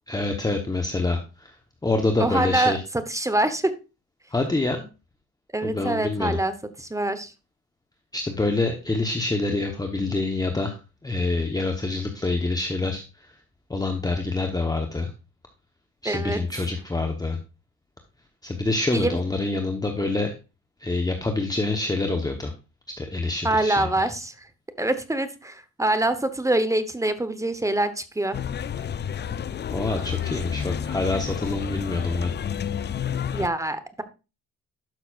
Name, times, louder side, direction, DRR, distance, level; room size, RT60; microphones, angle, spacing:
voice 1, 0.1-1.6 1.8-2.8 4.3-4.8 5.6-6.4 8.1-13.3 13.7-15.1 16.0-17.4 18.4-20.3 20.8-22.5 23.0-23.9 29.7-32.3, left 2 dB, 15° left, 4 dB, 1.0 m, -26 dB
voice 2, 2.2-2.8 3.1-3.7 5.5-7.3 16.0-16.4 18.9-19.2 23.4-24.5 24.8-28.4 33.3-34.0, right 2 dB, 10° right, 11 dB, 1.0 m, -25 dB
sound 1, 28.3-33.5, left 8 dB, 35° left, 0.5 m, -30 dB
12.0 x 5.8 x 2.5 m, 0.30 s
cardioid pair, 90°, 30 cm